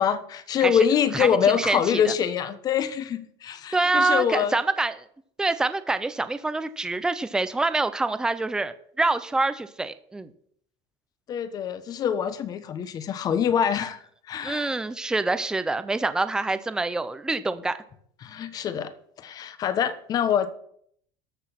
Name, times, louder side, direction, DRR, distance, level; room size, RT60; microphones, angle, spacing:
voice 1, 0.0-4.6 11.3-14.8 18.2-18.9 19.2-20.5, left 8 dB, 30° left, 13 dB, 0.9 m, -25 dB
voice 2, 1.1-2.1 3.7-4.9 5.4-10.3 14.4-17.8, right 3 dB, 5° right, 12 dB, 0.5 m, -26 dB
13.5 x 6.2 x 5.9 m, 0.66 s
cardioid pair, 165°, 13 cm